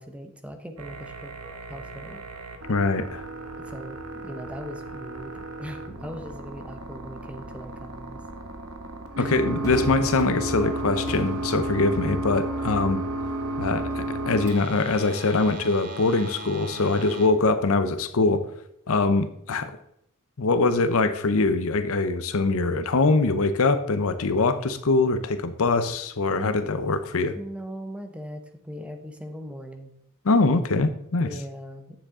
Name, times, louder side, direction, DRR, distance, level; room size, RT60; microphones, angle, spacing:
voice 1, 0.0-1.3 1.7-2.2 3.6-8.2 9.2-9.3 26.3-26.6 27.4-29.9 31.2-32.0, equal, 5° right, 7 dB, 0.8 m, -39 dB
sound 1, 0.8-17.3, right 1 dB, 70° right, 1.2 m, -34 dB
voice 2, 2.7-3.2 9.2-13.0 13.6-18.4 18.9-19.7 20.4-27.3 30.2-31.3, left 3 dB, 65° left, 11 dB, 0.7 m, -23 dB
Crowd / Fireworks, 9.6-16.2, equal, 15° left, 2.3 m, -42 dB
9.3 x 7.3 x 3.7 m, 0.74 s
head